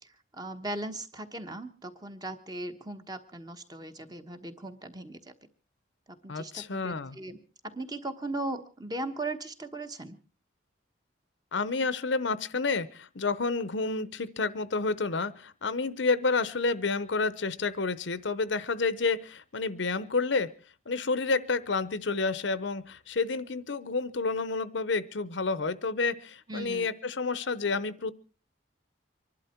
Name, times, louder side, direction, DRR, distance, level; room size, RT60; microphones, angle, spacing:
voice 1, 0.0-5.5 6.1-7.4 7.6-10.2 26.5-26.9, right 2 dB, 20° right, 8 dB, 1.2 m, -38 dB
voice 2, 6.3-7.2 11.5-20.5 20.9-28.1, left 4 dB, 70° left, 17 dB, 0.8 m, -29 dB
25.0 x 11.5 x 4.5 m, 0.37 s
head